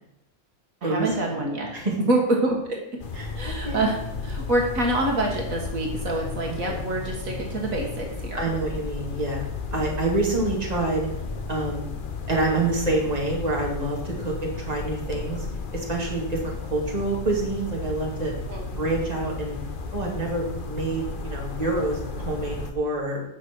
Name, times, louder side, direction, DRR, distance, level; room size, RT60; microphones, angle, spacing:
voice 1, 0.8-1.7 2.1-2.8 3.4-4.0 4.2-8.4 18.5-18.6, right 2 dB, 70° right, 0 dB, 2.1 m, -26 dB
sound 1, 3.0-22.7, left 4 dB, 40° left, 1.0 m, -34 dB
voice 2, 3.1-3.7 6.7-6.9 8.4-9.4 9.7-11.1 11.5-11.9 12.3-15.5 15.7-18.3 18.8-19.6 19.9-23.2, right 2 dB, 25° right, -2 dB, 2.5 m, -27 dB
10.5 x 6.1 x 6.3 m, 0.86 s
omnidirectional pair, 1.5 m